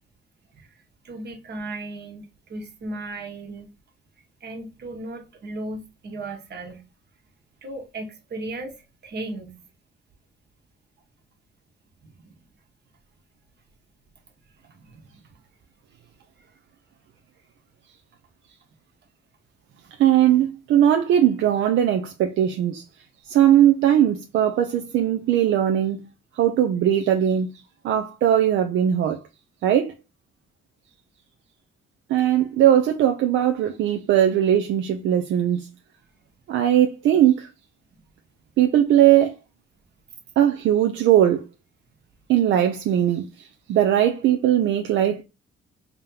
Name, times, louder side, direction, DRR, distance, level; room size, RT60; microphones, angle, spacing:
voice 1, 1.0-3.7 4.4-6.9 7.6-9.6 12.0-12.3 14.6-15.3 37.9-38.0, right 2 dB, 55° right, 1.3 m, -36 dB
voice 2, 20.0-22.8 23.3-26.1 26.4-27.5 27.8-29.2 29.6-29.9 32.1-35.7 36.5-37.5 38.6-39.3 40.4-41.4 42.3-45.2, right 11 dB, 75° right, 0.5 m, -19 dB
3.4 x 2.8 x 3.7 m
cardioid pair, 90°, 20 cm